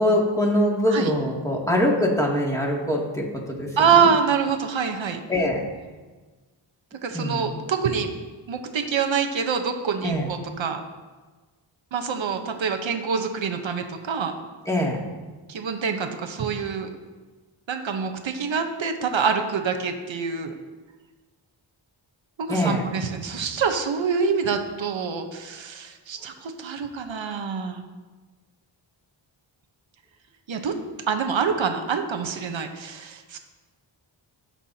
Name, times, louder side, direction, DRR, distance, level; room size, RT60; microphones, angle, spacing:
voice 1, 0.0-3.7 3.9-4.1 5.3-5.6 7.1-7.5 10.0-10.3 14.7-15.0 22.5-22.9, left 1 dB, 5° left, -3 dB, 2.5 m, -23 dB
voice 2, 3.8-5.2 7.0-8.1 8.5-10.8 11.9-14.4 15.5-16.9 17.7-20.5 22.4-27.8 30.5-30.7 31.1-33.4, right 6 dB, 70° right, 5 dB, 1.1 m, -25 dB
17.5 x 5.9 x 2.9 m, 1.3 s
cardioid pair, 60°, 47 cm